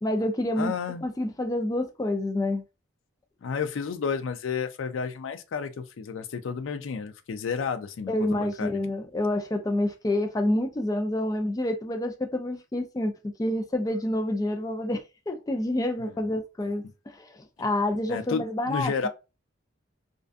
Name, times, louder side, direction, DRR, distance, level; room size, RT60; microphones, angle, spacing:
voice 1, 0.0-0.7 1.0-2.6 8.1-19.1, left 1 dB, 20° left, 0.3 m, -28 dB
voice 2, 0.6-1.1 3.4-8.7 16.0-16.1 18.1-19.1, left 5 dB, 85° left, 0.4 m, -31 dB
2.5 x 2.2 x 2.4 m
head